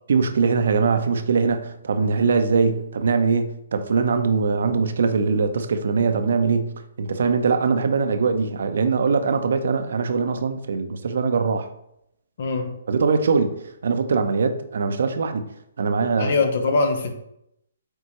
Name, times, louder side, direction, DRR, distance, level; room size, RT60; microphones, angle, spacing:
voice 1, 0.1-11.7 12.9-15.5 15.8-16.3, right 5 dB, 60° right, 9 dB, 0.7 m, -22 dB
voice 2, 12.4-12.7 16.2-17.1, left 3 dB, 55° left, 6 dB, 1.0 m, -22 dB
8.1 x 4.5 x 3.1 m, 0.80 s
figure-of-eight pair, 130°, 0 cm